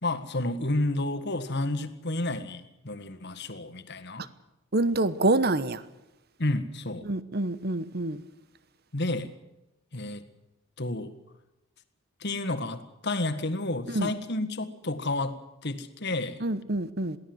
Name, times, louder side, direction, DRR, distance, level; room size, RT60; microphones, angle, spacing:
voice 1, 0.0-4.2 6.4-7.1 8.9-9.3 9.9-10.2 10.8-11.1 12.2-16.4, left 2 dB, 50° left, 1.7 m, -31 dB
voice 2, 4.7-5.8 7.0-8.2 13.9-14.1 16.4-17.2, right 2 dB, 45° right, 1.1 m, -26 dB
22.5 x 16.5 x 7.9 m
head